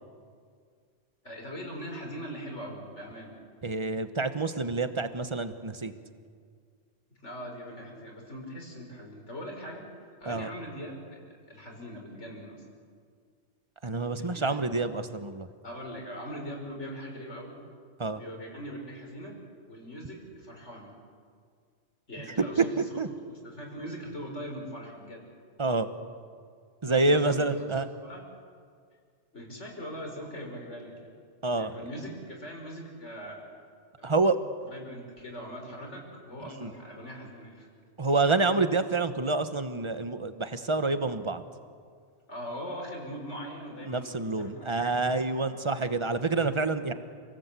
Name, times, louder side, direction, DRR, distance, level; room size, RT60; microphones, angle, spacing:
voice 1, 1.2-3.3 7.2-9.9 10.2-12.7 14.2-14.6 15.6-17.6 18.0-19.4 19.6-20.9 22.1-22.7 23.1-25.2 26.8-27.5 28.0-28.2 29.3-31.1 31.5-33.5 34.0-34.1 34.6-37.7 42.3-45.6, equal, 75° left, 0 dB, 5.4 m, -41 dB
voice 2, 3.6-5.9 10.3-10.5 13.8-15.5 18.0-18.2 23.0-23.1 25.6-25.9 26.8-27.9 31.4-31.7 34.0-34.4 36.6-36.7 38.0-41.4 43.8-46.9, right 3 dB, 25° right, 10 dB, 1.2 m, -27 dB
29.5 x 18.0 x 8.4 m, 2.1 s
omnidirectional pair, 1.2 m